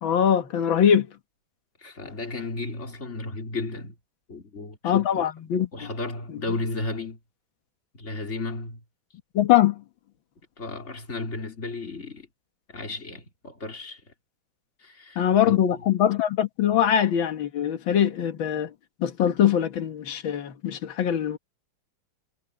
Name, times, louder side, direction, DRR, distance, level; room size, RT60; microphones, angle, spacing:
voice 1, 0.0-1.1 4.8-5.9 9.3-9.8 15.2-18.7 19.0-21.4, left 9 dB, 80° left, 2.2 m, -22 dB
voice 2, 1.8-3.9 4.3-5.2 5.7-7.2 7.9-8.8 10.6-12.3 12.7-14.0 14.8-15.6, left 3 dB, 35° left, 4.0 m, -34 dB
omnidirectional pair, 2.1 m